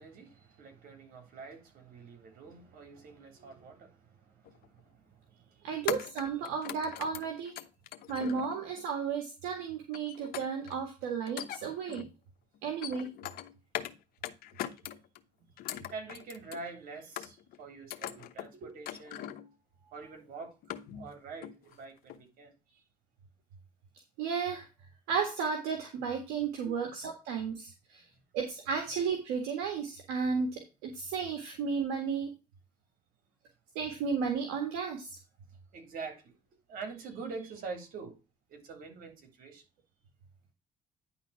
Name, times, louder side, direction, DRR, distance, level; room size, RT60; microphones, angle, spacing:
voice 1, 0.0-5.7 7.9-8.0 15.9-19.2 19.8-20.6 20.9-22.8 26.6-26.8 35.7-36.3 36.7-38.1 38.5-39.6, right 4 dB, 65° right, 3.5 m, -45 dB
sound 1, 4.4-4.7 5.9-8.8 9.9-10.8 11.2-12.1 12.6-14.0 14.2-15.2 15.6-16.7 17.2-17.6 17.9-18.5 18.8-19.5 20.0-20.1 20.4-21.2 21.4-21.7 22.1-22.2, left 12 dB, 70° left, 0.9 m, -41 dB
voice 2, 5.6-7.6 8.1-12.1 12.6-13.1 24.2-24.7 25.1-28.0 28.3-32.3 33.8-35.2, right 6 dB, 85° right, 1.9 m, -33 dB
10.0 x 4.0 x 5.8 m
supercardioid pair, 75°, 16 cm